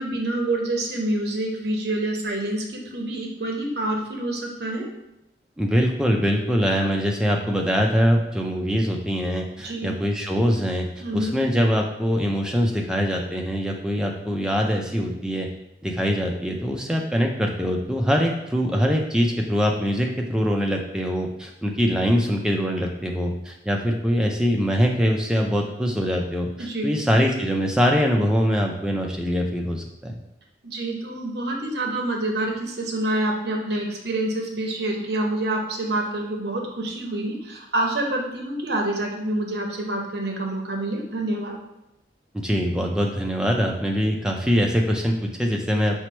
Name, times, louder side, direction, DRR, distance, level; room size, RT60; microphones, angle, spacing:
voice 1, 0.0-4.9 9.6-10.0 11.0-11.3 26.6-27.0 30.6-41.6, right 1 dB, 65° right, 1 dB, 0.8 m, -27 dB
voice 2, 5.6-10.9 11.1-15.5 15.8-30.2 42.3-46.0, equal, 5° right, 1 dB, 0.4 m, -23 dB
4.5 x 2.0 x 4.3 m, 0.91 s
head